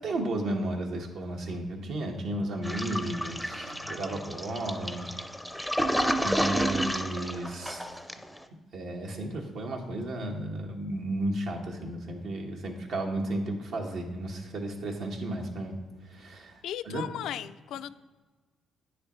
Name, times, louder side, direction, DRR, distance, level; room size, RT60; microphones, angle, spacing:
voice 1, 0.0-5.1 5.6-5.8 6.1-7.8 8.7-15.7 16.0-17.0, right 1 dB, 75° right, 1 dB, 1.3 m, -33 dB
Toilet flush, 2.6-8.4, equal, ahead, 0.5 m, -31 dB
Guitar, 3.6-4.4, equal, 90° right, 0.5 m, -50 dB
voice 2, 16.6-17.9, left 11 dB, 80° left, 12 dB, 0.3 m, -36 dB
9.3 x 6.5 x 3.1 m, 1.4 s
cardioid pair, 90°, 0 cm